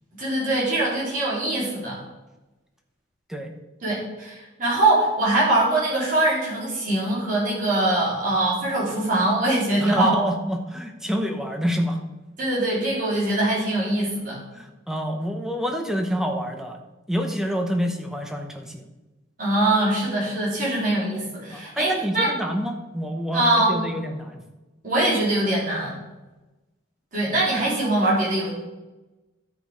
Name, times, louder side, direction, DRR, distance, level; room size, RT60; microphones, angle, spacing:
voice 1, 0.2-2.0 3.8-10.2 12.4-14.4 19.4-22.3 23.3-23.8 24.8-26.0 27.1-28.5, right 2 dB, 40° right, -7 dB, 3.7 m, -22 dB
voice 2, 9.8-12.0 14.5-16.8 17.1-18.8 21.5-24.4, equal, ahead, 4 dB, 0.9 m, -27 dB
12.0 x 5.1 x 5.1 m, 1.1 s
head